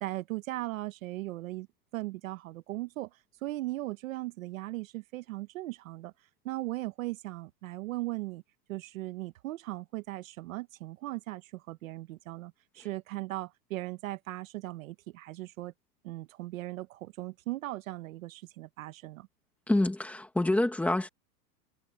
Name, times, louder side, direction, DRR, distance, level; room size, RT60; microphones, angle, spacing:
voice 1, 0.0-1.7 1.9-6.1 6.4-8.4 8.7-15.7 16.0-19.3, right 18 dB, 55° right, 1.0 m, -38 dB
voice 2, 19.7-21.1, left 1 dB, 5° left, 1.7 m, -27 dB
supercardioid pair, 175°, 50 cm